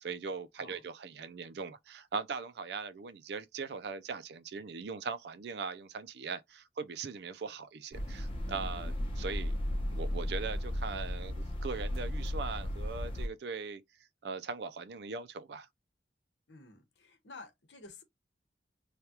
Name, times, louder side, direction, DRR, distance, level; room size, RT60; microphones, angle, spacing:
voice 1, 0.0-9.5 9.9-13.8 14.2-15.7, right 5 dB, 65° right, 0.4 m, -40 dB
sound 1, 7.9-13.3, left 1 dB, 30° left, 0.7 m, -35 dB
voice 2, 16.5-18.0, left 3 dB, 75° left, 1.0 m, -51 dB
3.3 x 2.3 x 2.8 m
head